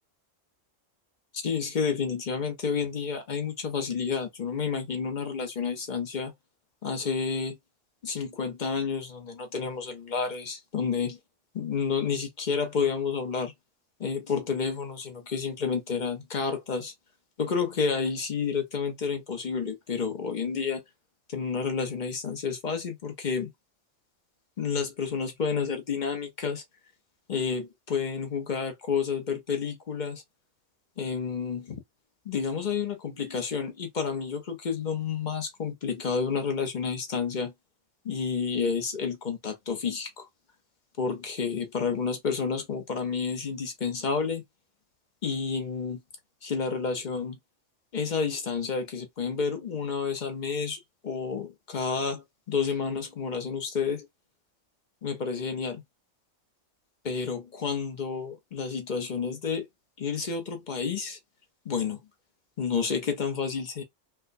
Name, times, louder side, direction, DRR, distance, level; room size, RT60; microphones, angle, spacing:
voice 1, 1.3-6.3 6.8-7.6 8.0-11.2 11.5-13.5 14.0-16.9 17.4-20.8 21.3-23.5 24.6-26.6 27.3-30.2 31.0-31.8 32.2-37.5 38.0-40.3 41.0-44.4 45.2-46.0 46.4-47.4 47.9-54.1 55.0-55.8 57.0-59.7 60.0-61.2 61.7-62.0 62.6-63.8, left 5 dB, 45° left, 0.7 m, -30 dB
4.5 x 2.1 x 2.5 m
omnidirectional pair, 1.3 m